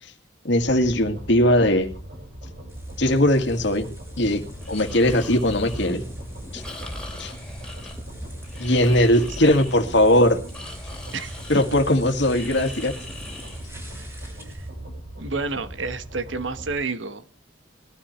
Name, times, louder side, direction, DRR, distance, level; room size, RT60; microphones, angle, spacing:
voice 1, 0.4-1.9 3.0-3.9 4.2-4.4 4.7-6.0 6.5-6.6 7.2-7.3 8.6-10.4 11.5-12.9, left 1 dB, 65° left, 6 dB, 2.0 m, -19 dB
sound 1, 0.6-16.7, right 1 dB, 55° right, 6.3 m, -39 dB
sound 2, 2.7-14.7, equal, 15° right, 5.5 m, -46 dB
Breathing, 4.5-14.2, left 1 dB, 5° left, 3.4 m, -40 dB
voice 2, 15.2-17.4, right 4 dB, 80° right, 12 dB, 1.2 m, -30 dB
20.0 x 13.0 x 3.2 m, 0.35 s
head